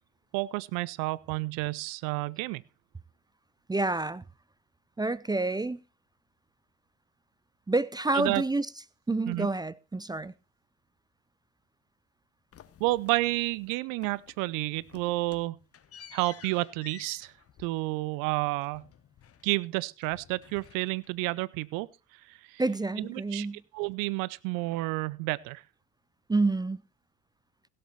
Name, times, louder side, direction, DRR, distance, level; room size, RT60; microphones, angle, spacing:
voice 1, 0.3-2.6 8.1-8.4 9.3-9.5 12.8-15.6 16.1-17.3 17.6-18.8 19.4-21.9 22.3-22.6 23.0-23.5 23.7-25.6, right 21 dB, 65° right, 0.6 m, -30 dB
voice 2, 3.7-4.2 5.0-5.8 7.7-8.7 9.1-10.3 22.6-23.6 26.3-26.8, right 2 dB, 10° right, 0.5 m, -28 dB
sound 1, 12.5-13.7 14.0-14.5 14.8-19.7 20.0-21.3, left 9 dB, 40° left, 1.1 m, -53 dB
16.5 x 7.5 x 4.1 m
hypercardioid pair, 55°, 35 cm